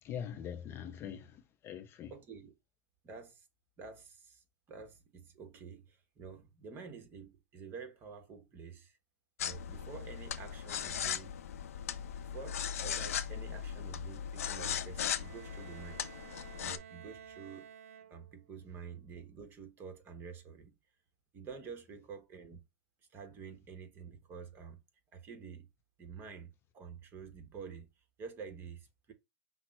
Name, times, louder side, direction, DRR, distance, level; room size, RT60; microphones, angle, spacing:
voice 1, 0.0-2.1, left 8 dB, 30° left, 0.5 m, -43 dB
voice 2, 2.1-2.5 3.0-3.4 3.8-9.0 9.4-11.4 12.2-16.0 16.6-17.7 18.1-20.7 21.3-22.6 23.1-24.8 25.1-25.7 26.0-27.9 28.2-29.1, right 5 dB, 30° right, 1.1 m, -49 dB
sound 1, 9.4-16.8, left 9 dB, 75° left, 0.5 m, -38 dB
Bowed string instrument, 14.9-18.5, right 8 dB, 70° right, 0.4 m, -53 dB
5.8 x 2.1 x 4.2 m
hypercardioid pair, 115°, 8 cm